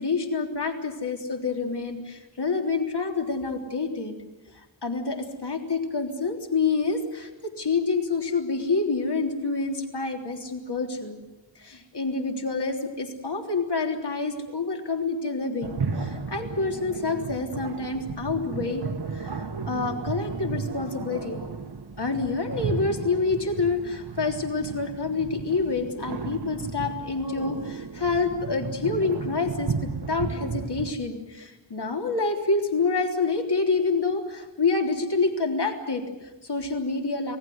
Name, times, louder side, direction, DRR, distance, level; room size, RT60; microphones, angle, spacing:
voice 1, 0.0-4.1 4.5-11.2 11.6-18.8 19.1-21.4 22.0-37.4, left 4 dB, 60° left, 3 dB, 3.7 m, -27 dB
sound 1, 15.6-30.9, right 4 dB, 60° right, 1.5 m, -34 dB
27.0 x 17.5 x 9.6 m, 0.99 s
wide cardioid pair, 80°, 44 cm